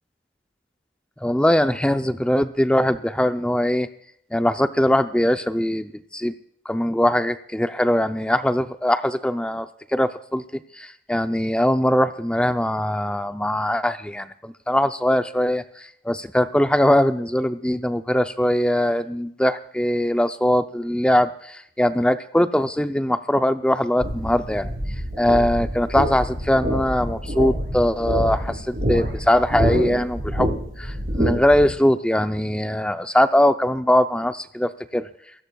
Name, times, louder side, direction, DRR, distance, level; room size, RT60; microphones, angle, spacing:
voice 1, 1.2-3.9 4.3-6.3 6.7-9.7 9.9-10.4 10.7-24.7 25.2-35.1, left 1 dB, 5° left, 9 dB, 0.5 m, -21 dB
sound 1, 24.0-31.7, equal, 50° right, 7.8 m, -26 dB
28.5 x 16.0 x 2.3 m, 0.69 s
head